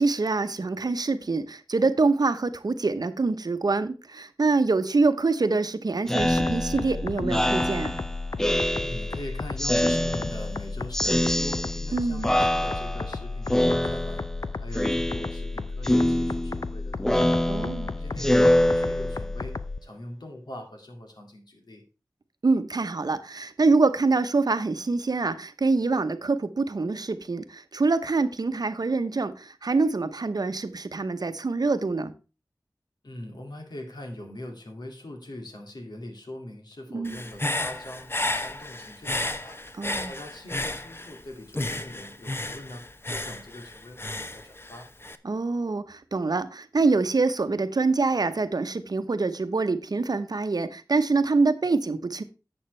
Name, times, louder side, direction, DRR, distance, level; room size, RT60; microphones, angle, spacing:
voice 1, 0.0-8.0 11.9-12.3 17.5-17.9 22.4-32.1 36.9-37.2 39.8-40.1 45.2-52.2, right 3 dB, 70° right, 0.8 m, -25 dB
Speech synthesizer, 6.1-9.2 9.6-10.6 10.9-12.0 12.2-13.2 13.5-14.4 14.7-15.5 15.8-19.4, left 1 dB, 5° left, 0.4 m, -25 dB
sound 1, 6.2-19.8, left 3 dB, 60° left, 0.5 m, -34 dB
voice 2, 8.8-14.2 14.6-17.5 18.0-21.8 33.0-39.6 40.0-44.9, left 1 dB, 80° left, 2.3 m, -42 dB
Human voice / Breathing, 37.0-41.2 41.5-45.2, left 2 dB, 35° left, 0.8 m, -32 dB
11.0 x 7.8 x 3.2 m
wide cardioid pair, 55°, 7 cm